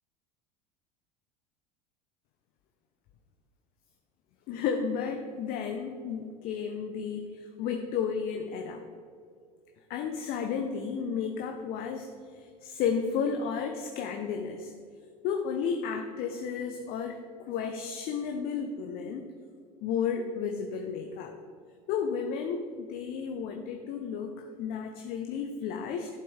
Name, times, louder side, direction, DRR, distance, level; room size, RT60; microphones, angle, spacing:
voice 1, 4.5-8.8 9.9-14.7 15.2-19.2 19.8-21.3 21.9-26.2, left 6 dB, 50° left, 4 dB, 0.9 m, -33 dB
12.5 x 7.6 x 3.4 m, 2.3 s
hypercardioid pair, 80°, 20 cm